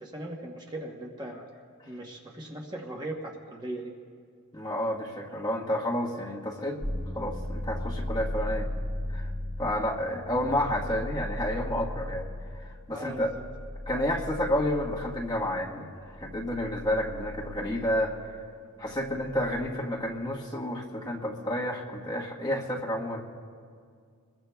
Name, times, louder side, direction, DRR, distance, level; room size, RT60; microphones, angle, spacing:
voice 1, 0.0-1.5 1.9-3.9 12.9-13.2, right 1 dB, 20° right, -1 dB, 1.1 m, -38 dB
voice 2, 4.5-6.8 7.1-8.7 9.1-9.3 9.6-12.3 12.6-13.3 13.9-15.9 16.2-18.3 18.8-23.3, left 1 dB, 20° left, -3 dB, 1.3 m, -30 dB
sound 1, 6.8-19.5, left 1 dB, 5° right, 3.5 m, -37 dB
26.5 x 21.5 x 2.3 m, 2.1 s
head